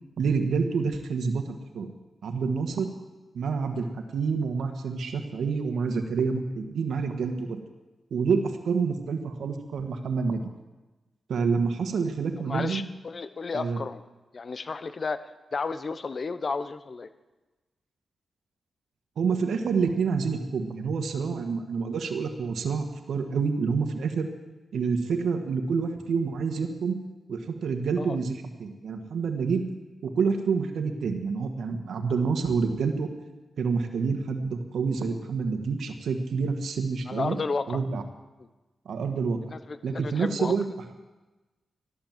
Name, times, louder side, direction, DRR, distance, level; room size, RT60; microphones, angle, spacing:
voice 1, 0.2-1.9 2.2-2.9 3.3-3.9 4.1-7.6 8.1-10.4 11.3-12.8 13.5-13.8 19.2-24.3 24.7-27.0 27.3-29.6 30.0-33.1 33.6-37.4 37.7-38.0 38.9-39.4 39.8-40.6, right 5 dB, 85° right, 5 dB, 1.6 m, -28 dB
voice 2, 12.5-14.0 14.3-15.2 15.5-17.1 28.0-28.2 37.1-37.8 38.4-38.5 39.5-40.6, left 4 dB, 50° left, 12 dB, 0.9 m, -32 dB
14.0 x 12.0 x 7.5 m, 1.1 s
cardioid pair, 55°, 0 cm